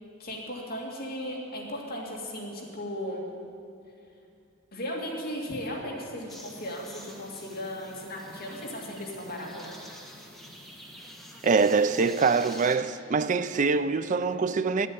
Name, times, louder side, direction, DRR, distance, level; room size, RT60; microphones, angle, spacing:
voice 1, 0.2-3.2 4.7-9.7, equal, 45° left, 2.4 m, -36 dB
sound 1, 6.3-12.8, equal, ahead, 1.2 m, -47 dB
voice 2, 11.4-14.9, right 4 dB, 35° right, 0.4 m, -24 dB
12.5 x 8.3 x 8.7 m
head